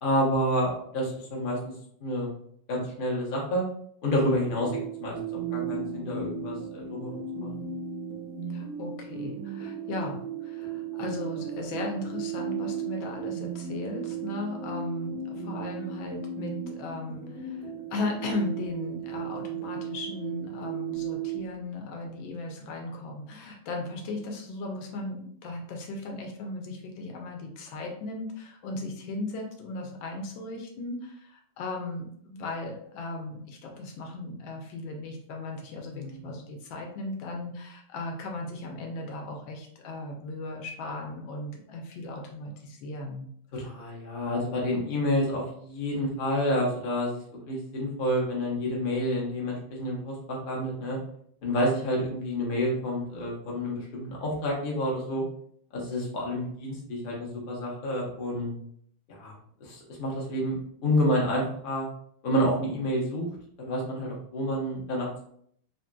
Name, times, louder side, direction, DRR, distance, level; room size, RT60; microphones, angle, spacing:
voice 1, 0.0-1.6 2.0-2.3 2.7-3.6 4.0-4.7 5.0-5.2 5.5-7.5 35.9-36.2 43.5-51.0 51.4-55.2 55.7-58.5 59.1-59.3 59.6-60.6 60.8-61.9 62.2-63.3 63.6-65.2, equal, 45° left, -3 dB, 0.6 m, -29 dB
sound 1, 4.5-21.4, right 7 dB, 75° right, 0.8 m, -35 dB
voice 2, 8.5-17.6 17.9-43.3, left 2 dB, 75° left, 1 dB, 1.4 m, -36 dB
3.4 x 2.6 x 2.2 m, 0.64 s
omnidirectional pair, 2.2 m